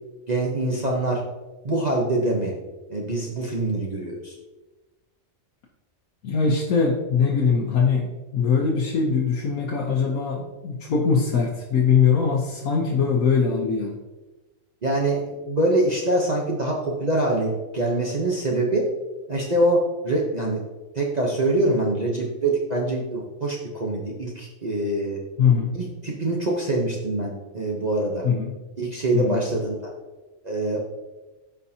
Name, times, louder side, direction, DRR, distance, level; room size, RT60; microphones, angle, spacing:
voice 1, 0.3-1.2 1.6-2.5 2.9-4.3 12.9-13.0 14.8-18.9 19.3-20.6 20.9-25.2 25.7-28.2 28.8-29.8 30.4-30.8, right 2 dB, 35° right, -2 dB, 0.9 m, -24 dB
voice 2, 6.2-14.0 25.4-25.7 28.2-28.5 29.1-29.4, left 5 dB, 80° left, -2 dB, 1.3 m, -22 dB
12.5 x 4.6 x 2.8 m, 1.1 s
omnidirectional pair, 1.4 m